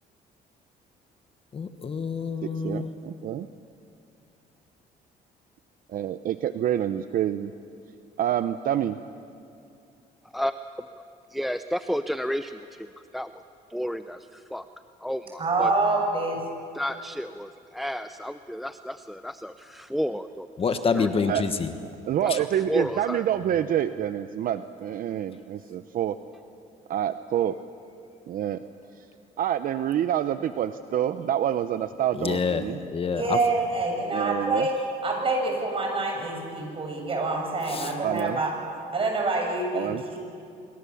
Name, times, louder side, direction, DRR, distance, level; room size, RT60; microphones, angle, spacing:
voice 1, 1.5-2.9 20.6-21.7 22.3-22.4 32.2-33.4 37.7-37.9, left 5 dB, 35° left, 9 dB, 1.3 m, -27 dB
voice 2, 2.6-3.5 5.9-7.5 8.2-9.0 21.3-21.4 22.1-26.1 26.9-27.5 28.3-28.6 29.4-32.8 34.1-34.7 38.0-38.4 39.7-40.0, right 10 dB, 55° right, 11 dB, 0.7 m, -27 dB
voice 3, 11.3-12.9 13.1-13.3 13.7-14.7 15.0-15.7 16.7-20.5 20.9-21.1 22.2-22.3 22.7-23.3, equal, ahead, 10 dB, 0.6 m, -31 dB
voice 4, 15.4-16.4 33.0-34.7 35.0-38.5 38.9-40.2, right 3 dB, 35° right, 2 dB, 6.8 m, -26 dB
26.0 x 23.0 x 7.1 m, 2.5 s
cardioid pair, 110°, 17 cm